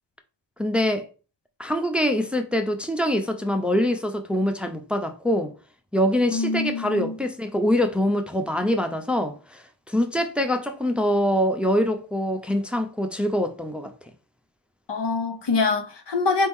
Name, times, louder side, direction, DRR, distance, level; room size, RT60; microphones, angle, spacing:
voice 1, 0.6-1.0 1.6-5.5 5.9-13.9, equal, 5° right, 0.6 m, -24 dB
voice 2, 6.3-7.2 14.9-16.5, left 4 dB, 75° left, 0.9 m, -25 dB
4.4 x 2.9 x 3.5 m
wide cardioid pair, 75°, 42 cm